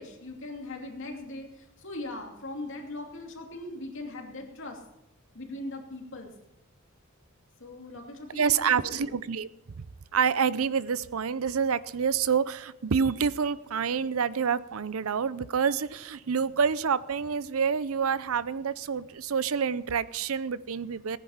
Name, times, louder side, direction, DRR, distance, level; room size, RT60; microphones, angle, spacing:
voice 1, 0.0-4.8 5.3-6.3 7.6-9.1, left 2 dB, 60° left, 2 dB, 2.7 m, -40 dB
voice 2, 8.3-9.5 10.1-21.2, right 6 dB, 75° right, 18 dB, 0.6 m, -27 dB
17.5 x 10.0 x 5.7 m, 0.88 s
head